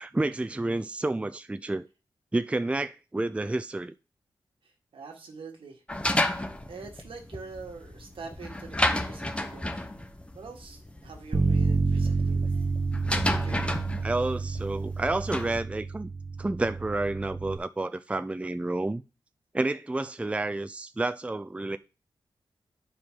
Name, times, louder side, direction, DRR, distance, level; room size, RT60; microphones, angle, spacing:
voice 1, 0.0-1.9 2.3-3.9 14.0-16.1 16.4-19.0 19.5-21.8, right 2 dB, 15° right, 0.4 m, -30 dB
voice 2, 4.6-6.1 6.7-9.9 10.3-12.5 13.2-13.9, right 4 dB, 80° right, 1.7 m, -45 dB
sound 1, 5.9-15.6, left 1 dB, 10° left, 0.8 m, -32 dB
Bass guitar, 11.3-17.6, right 4 dB, 35° right, 1.0 m, -29 dB
10.0 x 4.8 x 3.8 m
wide cardioid pair, 90°, 9 cm